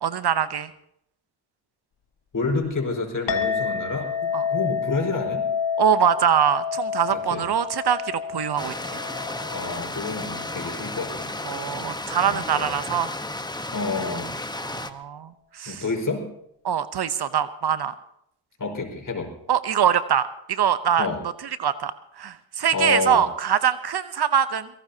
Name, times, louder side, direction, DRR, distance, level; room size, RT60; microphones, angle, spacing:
voice 1, 0.0-0.7 4.3-4.4 5.8-8.7 11.4-13.1 14.5-15.8 16.6-17.9 19.5-21.1 21.6-24.7, right 8 dB, 55° right, 14 dB, 0.8 m, -23 dB
voice 2, 2.3-5.5 7.1-7.5 9.5-11.3 12.2-12.7 13.7-14.4 15.7-16.3 18.6-19.4 21.0-21.2 22.7-23.3, left 3 dB, 40° left, 2 dB, 4.9 m, -29 dB
Chink clink, 3.3-12.0, left 6 dB, 60° left, 1.7 m, -30 dB
Stream, 8.6-14.9, left 2 dB, 10° left, 1.1 m, -33 dB
23.0 x 17.0 x 2.8 m, 0.75 s
supercardioid pair, 50°, 48 cm